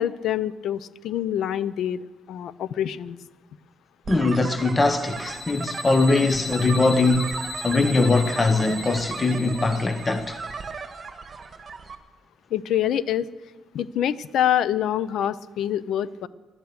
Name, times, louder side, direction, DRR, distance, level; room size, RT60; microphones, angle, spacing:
voice 1, 0.0-3.2 12.5-13.3 13.7-16.3, left 10 dB, 75° left, 0.6 m, -26 dB
voice 2, 4.1-7.4 7.6-10.4, left 3 dB, 25° left, 0.9 m, -21 dB
sound 1, 4.1-12.0, right 5 dB, 35° right, 1.6 m, -36 dB
sound 2, 4.6-10.5, left 2 dB, ahead, 2.2 m, -37 dB
16.5 x 12.0 x 6.6 m
cardioid pair, 90°, 0 cm